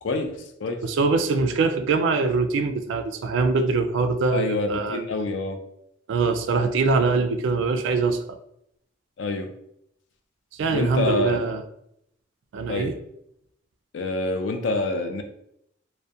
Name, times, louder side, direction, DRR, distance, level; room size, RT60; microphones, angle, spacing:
voice 1, 0.0-0.8 4.3-5.6 9.2-9.5 10.7-11.4 12.7-12.9 13.9-15.2, left 2 dB, 70° left, 0.4 m, -26 dB
voice 2, 0.8-5.0 6.1-8.4 10.5-11.6 12.5-12.9, right 4 dB, 75° right, 0.3 m, -23 dB
2.3 x 2.1 x 2.6 m
head